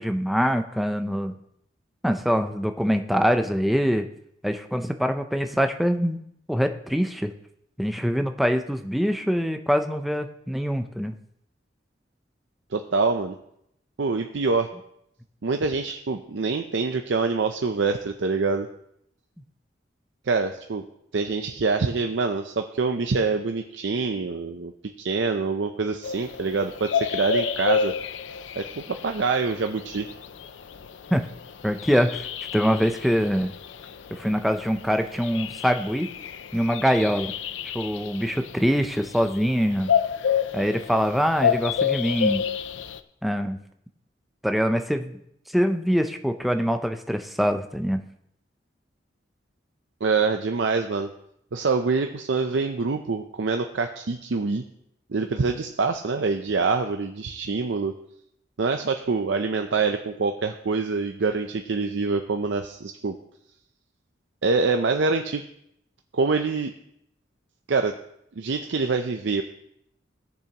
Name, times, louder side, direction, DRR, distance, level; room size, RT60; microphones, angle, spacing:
voice 1, 0.0-1.4 2.0-4.1 4.4-6.2 6.5-7.3 7.8-11.1 31.1-31.2 31.6-32.3 32.5-33.5 34.1-36.1 36.5-37.3 37.7-39.9 40.5-42.4 43.2-43.6 44.4-45.2 45.5-48.0, equal, ahead, 6 dB, 0.5 m, -24 dB
voice 2, 12.7-13.4 14.0-14.7 15.4-18.7 20.3-20.8 21.1-24.7 25.0-28.0 28.6-30.1 50.0-51.1 51.5-54.6 55.1-57.9 58.6-63.2 64.4-65.4 66.1-66.7 67.7-67.9 68.4-69.4, right 4 dB, 75° right, 6 dB, 0.6 m, -25 dB
sound 1, 26.0-43.0, left 7 dB, 80° left, 0.5 m, -30 dB
17.0 x 6.9 x 2.9 m, 0.75 s
head